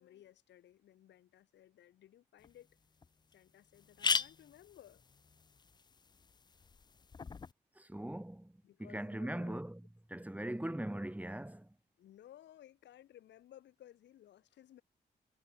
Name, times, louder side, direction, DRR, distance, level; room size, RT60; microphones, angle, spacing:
voice 1, 0.0-2.7 3.3-5.0 8.6-9.6 12.0-14.8, left 12 dB, 85° left, 2.3 m, -59 dB
sound 1, 2.4-2.5 3.0-3.1 3.3-3.4 3.7-7.5, left 5 dB, 25° left, 0.3 m, -39 dB
voice 2, 7.8-8.5 8.8-9.8 10.1-11.7, right 1 dB, 10° right, 2.6 m, -40 dB
cardioid pair, 60°, 18 cm